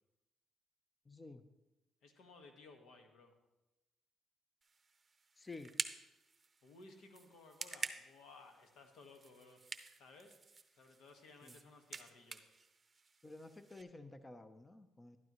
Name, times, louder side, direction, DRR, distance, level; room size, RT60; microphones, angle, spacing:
voice 1, 1.1-1.4 5.4-5.7 11.4-11.5 13.2-15.2, left 3 dB, 20° left, 9 dB, 0.6 m, -52 dB
voice 2, 2.0-3.3 6.6-9.6 9.9-10.3 10.7-12.5, left 3 dB, 80° left, 5 dB, 1.5 m, -59 dB
sound 1, 4.6-13.8, right 4 dB, 30° right, 0.7 m, -49 dB
12.0 x 12.0 x 3.1 m, 1.0 s
cardioid pair, 90°, 0 cm